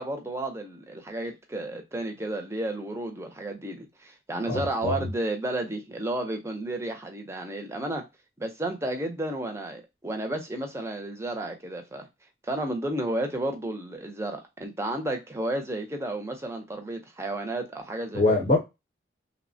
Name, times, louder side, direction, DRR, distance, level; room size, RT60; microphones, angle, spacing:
voice 1, 0.0-8.0 8.4-12.1 12.4-18.4, right 1 dB, 15° right, 0.5 m, -32 dB
voice 2, 4.5-5.1 18.1-18.6, left 2 dB, 40° left, 0.6 m, -24 dB
3.0 x 2.1 x 2.5 m
head